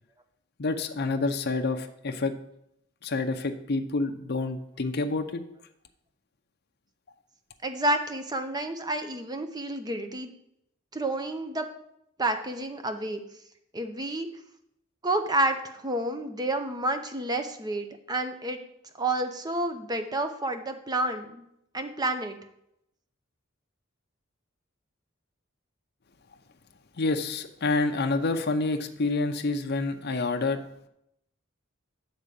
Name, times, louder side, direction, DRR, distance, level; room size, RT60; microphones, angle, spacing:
voice 1, 0.6-2.3 3.0-5.4 27.0-30.6, left 3 dB, 50° left, 5 dB, 0.6 m, -28 dB
voice 2, 7.6-10.3 10.9-11.6 12.2-13.2 13.7-14.3 15.0-18.6 19.0-21.4 21.7-22.4, right 1 dB, 20° right, 7 dB, 0.7 m, -29 dB
9.7 x 3.7 x 6.8 m, 0.78 s
head